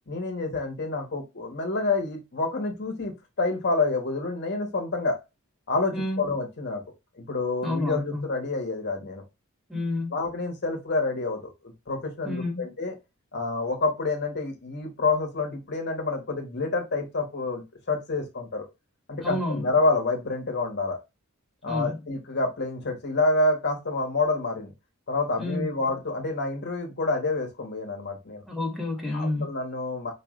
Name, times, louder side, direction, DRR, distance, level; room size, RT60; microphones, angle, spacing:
voice 1, 0.1-3.1 3.4-5.2 5.7-6.8 7.2-9.2 10.1-12.9 13.3-18.7 19.1-21.0 21.6-24.7 25.1-28.4 29.1-30.1, left 3 dB, 50° left, 1.1 m, -28 dB
voice 2, 5.9-6.2 7.6-8.2 9.7-10.2 12.2-12.7 19.2-19.7 21.7-22.0 25.4-25.7 28.5-29.5, left 2 dB, ahead, 1.2 m, -29 dB
4.6 x 3.2 x 2.4 m
head